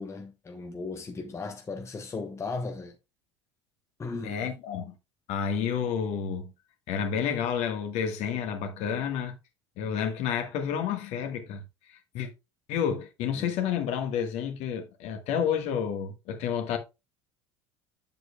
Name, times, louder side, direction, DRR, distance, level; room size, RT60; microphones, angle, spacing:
voice 1, 0.0-2.9 4.0-4.5 13.3-13.5, left 3 dB, 20° left, 1.0 m, -36 dB
voice 2, 4.2-4.9 5.3-6.5 6.9-9.3 9.8-11.6 11.9-12.3 12.7-16.8, left 7 dB, 50° left, 1.6 m, -30 dB
8.1 x 7.5 x 2.3 m
figure-of-eight pair, 70°, 15 cm